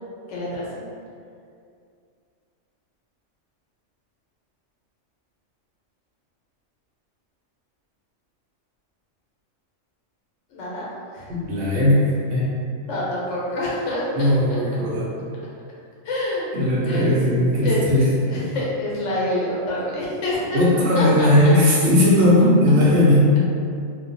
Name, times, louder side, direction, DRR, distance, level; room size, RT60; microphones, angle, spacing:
voice 1, 0.3-0.8 10.5-10.9 11.1-11.3 12.9-14.6 16.0-16.5 16.9-17.2 17.6-17.8 18.3-20.6 20.9-21.3, left 1 dB, 80° left, -6 dB, 1.0 m, -27 dB
voice 2, 11.3-12.5 14.2-15.1 16.5-18.1 20.5-23.3, left 1 dB, 65° right, -6 dB, 0.8 m, -17 dB
2.4 x 2.2 x 2.5 m, 2.3 s
omnidirectional pair, 1.3 m